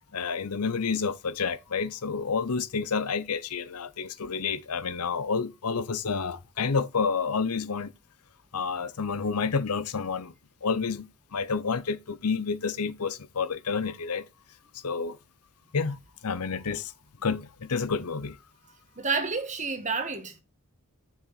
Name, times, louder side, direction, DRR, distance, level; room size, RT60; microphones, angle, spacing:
voice 1, 0.1-7.9 8.5-10.3 10.6-14.2 14.8-15.2 15.7-16.9 17.2-18.4, left 5 dB, 85° left, 0.8 m, -29 dB
voice 2, 18.7-20.4, right 4 dB, 35° right, 1.5 m, -30 dB
7.0 x 6.5 x 4.1 m
head